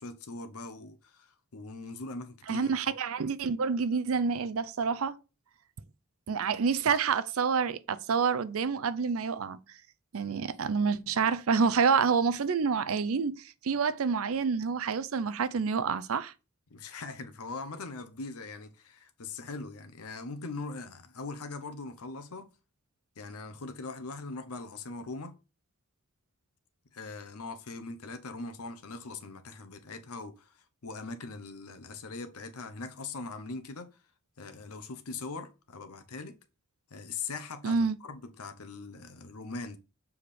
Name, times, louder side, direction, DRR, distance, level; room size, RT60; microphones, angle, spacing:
voice 1, 0.0-2.9 16.7-22.5 23.2-25.4 26.9-33.9 34.4-36.4 36.9-39.8, left 3 dB, 80° left, 0.8 m, -41 dB
voice 2, 2.5-5.1 6.3-9.6 10.1-16.3 37.6-38.0, right 5 dB, 65° right, 0.5 m, -28 dB
7.1 x 4.7 x 3.3 m
head